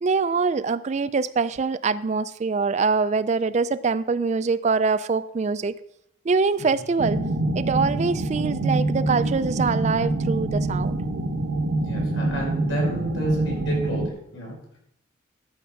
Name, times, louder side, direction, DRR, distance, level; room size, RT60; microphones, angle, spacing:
voice 1, 0.0-5.7 6.2-7.2 7.5-11.0, right 4 dB, 35° right, 0.3 m, -24 dB
sound 1, 7.0-14.1, right 2 dB, 90° right, 1.0 m, -25 dB
voice 2, 11.8-14.5, equal, 80° left, 5.5 m, -31 dB
13.0 x 6.2 x 5.8 m
head